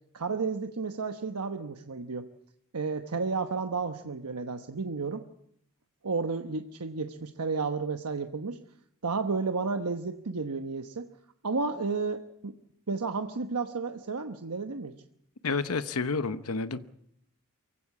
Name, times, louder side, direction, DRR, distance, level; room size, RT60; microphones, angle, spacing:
voice 1, 0.1-2.3 2.7-5.2 6.0-8.6 9.0-11.1 11.4-12.5 12.9-14.9, right 4 dB, 85° right, 7 dB, 1.0 m, -32 dB
voice 2, 15.4-16.9, left 4 dB, 70° left, 12 dB, 0.9 m, -30 dB
23.5 x 16.0 x 8.4 m, 0.73 s
head